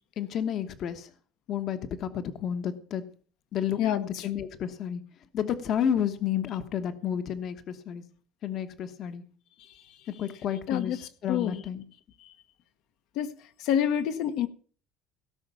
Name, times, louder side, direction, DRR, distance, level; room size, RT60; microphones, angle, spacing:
voice 1, 0.2-1.1 1.5-3.0 3.5-5.0 5.3-8.0 8.4-9.2 10.1-11.8, left 9 dB, 45° left, 10 dB, 1.1 m, -31 dB
voice 2, 3.8-4.3 10.7-11.0 11.3-11.6 12.2-12.3 13.2-13.3 13.6-14.5, left 9 dB, 65° left, 9 dB, 1.1 m, -27 dB
17.5 x 5.8 x 7.0 m, 0.43 s
cardioid pair, 155°, 0 cm